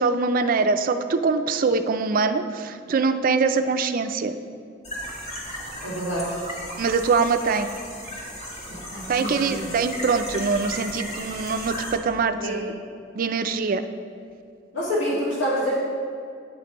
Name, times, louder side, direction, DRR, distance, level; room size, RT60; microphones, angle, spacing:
voice 1, 0.0-4.3 6.8-7.7 9.1-12.7 13.1-13.8, right 4 dB, 45° right, 9 dB, 0.4 m, -23 dB
sound 1, 4.8-11.9, equal, 40° left, 1.8 m, -35 dB
voice 2, 5.8-6.3 8.7-9.5 12.4-12.5 14.7-15.7, equal, 70° left, -7 dB, 2.0 m, -27 dB
9.2 x 8.9 x 3.0 m, 2.3 s
head